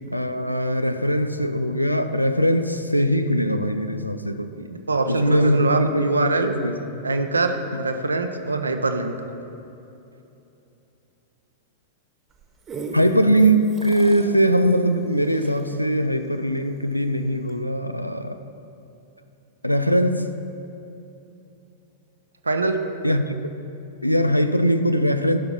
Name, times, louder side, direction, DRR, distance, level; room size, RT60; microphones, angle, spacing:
voice 1, 0.1-4.5 5.1-6.8 7.7-7.8 8.6-8.8 12.9-18.4 19.6-20.2 23.0-23.4 24.0-25.4, equal, 90° left, 9 dB, 0.5 m, -21 dB
voice 2, 4.6-6.5 7.0-9.1 22.5-22.8, right 2 dB, 80° right, 6 dB, 0.7 m, -23 dB
sound 1, 12.3-17.0 17.5-17.6, right 2 dB, 20° right, 1.2 m, -37 dB
14.5 x 5.8 x 5.7 m, 2.9 s
figure-of-eight pair, 95°, 0 cm